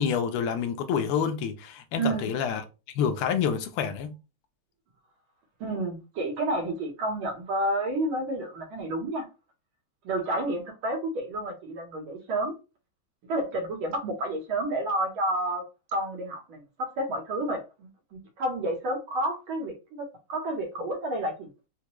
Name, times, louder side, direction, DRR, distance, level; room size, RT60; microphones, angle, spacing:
voice 1, 0.0-2.6 2.9-4.1, left 7 dB, 85° left, 1.5 m, -28 dB
voice 2, 1.9-2.3 5.6-9.3 10.0-12.5 13.3-15.6 15.9-21.5, right 1 dB, 75° right, 1.9 m, -30 dB
4.5 x 2.2 x 2.9 m
omnidirectional pair, 2.4 m